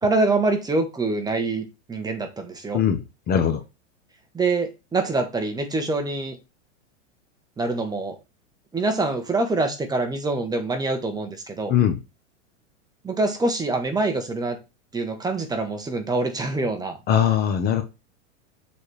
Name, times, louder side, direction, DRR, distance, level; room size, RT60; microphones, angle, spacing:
voice 1, 0.0-2.8 4.3-6.4 7.6-8.2 8.7-11.7 13.0-14.6 14.9-17.0, right 2 dB, 10° right, 1.1 m, -25 dB
voice 2, 2.7-3.6 11.7-12.0 17.1-17.8, left 9 dB, 25° left, 0.8 m, -21 dB
6.9 x 4.2 x 3.3 m
hypercardioid pair, 130°, 37 cm